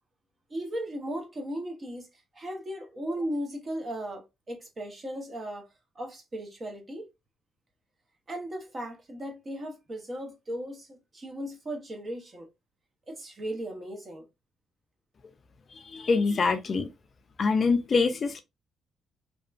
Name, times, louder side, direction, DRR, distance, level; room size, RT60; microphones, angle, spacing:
voice 1, 0.5-2.1 2.3-5.7 5.9-7.1 8.3-12.5 13.1-14.3, right 1 dB, 35° right, 1.0 m, -36 dB
voice 2, 15.9-16.9 17.4-18.4, left 4 dB, 45° left, 0.4 m, -24 dB
2.8 x 2.2 x 2.4 m
cardioid pair, 90°, 0 cm